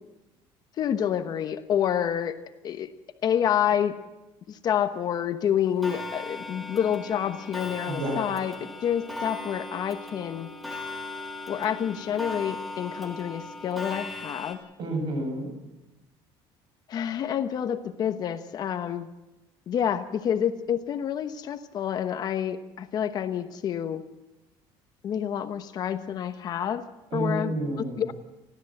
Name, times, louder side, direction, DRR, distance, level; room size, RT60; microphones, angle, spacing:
voice 1, 0.8-2.4 2.6-2.9 3.2-3.9 4.5-10.5 11.5-14.6 16.9-19.1 19.7-24.0 25.0-26.9 27.1-27.6 28.0-28.1, left 9 dB, 40° left, 10 dB, 1.0 m, -28 dB
Clock, 5.8-14.5, left 2 dB, ahead, 2.9 m, -38 dB
voice 2, 7.9-8.3 14.8-15.5 27.1-28.0, right 1 dB, 50° right, 5 dB, 7.8 m, -29 dB
29.5 x 13.0 x 7.8 m, 1.0 s
cardioid pair, 155°, 11 cm